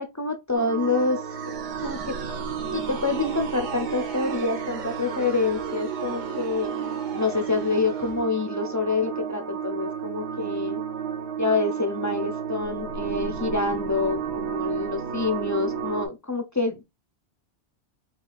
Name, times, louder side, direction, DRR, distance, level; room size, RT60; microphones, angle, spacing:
voice 1, 0.0-2.2 2.7-6.7 7.1-10.8 11.4-16.8, left 3 dB, 30° left, 0.3 m, -27 dB
sound 1, 0.5-16.1, right 8 dB, 75° right, 1.0 m, -32 dB
sound 2, 0.8-8.2, right 4 dB, 50° right, 0.9 m, -40 dB
4.7 x 2.9 x 2.3 m
omnidirectional pair, 1.1 m